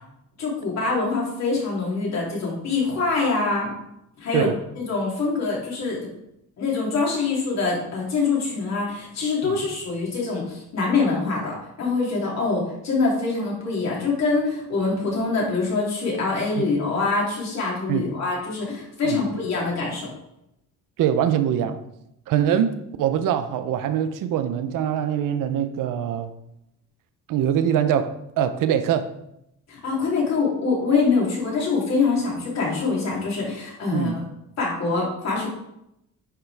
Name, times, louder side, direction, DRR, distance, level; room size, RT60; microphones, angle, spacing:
voice 1, 0.4-3.7 4.2-6.0 6.6-20.1 29.7-34.2 34.6-35.5, left 4 dB, 55° left, -4 dB, 3.3 m, -24 dB
voice 2, 21.0-21.8 22.3-26.3 27.3-29.1 33.9-34.2, right 9 dB, 85° right, 10 dB, 0.8 m, -23 dB
9.8 x 5.7 x 3.5 m, 0.82 s
cardioid pair, 150°, 31 cm